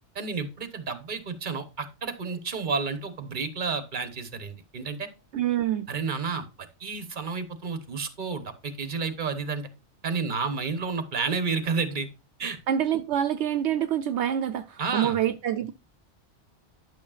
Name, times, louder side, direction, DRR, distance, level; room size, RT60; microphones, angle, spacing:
voice 1, 0.1-5.1 5.9-9.7 10.0-12.1 12.4-12.6 14.8-15.2, right 5 dB, 45° right, 1.2 m, -31 dB
voice 2, 5.3-5.9 12.7-15.7, right 10 dB, 75° right, 0.9 m, -26 dB
11.5 x 6.2 x 2.4 m
omnidirectional pair, 1.2 m